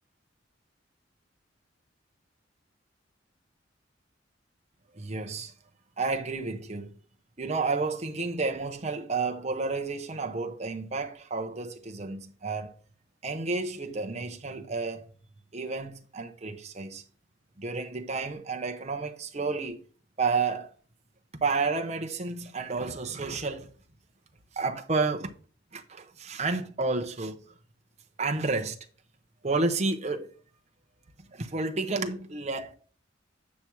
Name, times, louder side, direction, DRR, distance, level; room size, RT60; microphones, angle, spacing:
voice 1, 4.9-5.5 6.0-6.9 7.4-12.8 13.2-15.1 15.5-17.0 17.6-19.8 20.2-20.7 21.4-23.7 24.5-25.3 25.7-27.4 28.2-28.8 29.4-30.3 31.3-32.7, right 3 dB, 35° right, 0.9 m, -31 dB
8.5 x 6.1 x 4.6 m
head